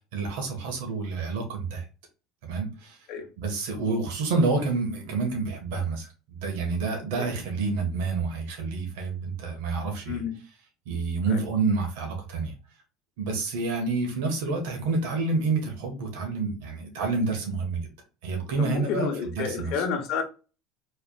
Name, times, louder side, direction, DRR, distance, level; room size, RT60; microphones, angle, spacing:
voice 1, 0.1-1.9 2.4-3.1 3.4-10.2 10.8-12.5 13.2-17.8 18.2-19.8, right 4 dB, 80° right, 1.4 m, -28 dB
voice 2, 18.6-20.2, left 6 dB, 60° left, 1.1 m, -30 dB
4.5 x 3.4 x 2.4 m
supercardioid pair, 115°, 0 cm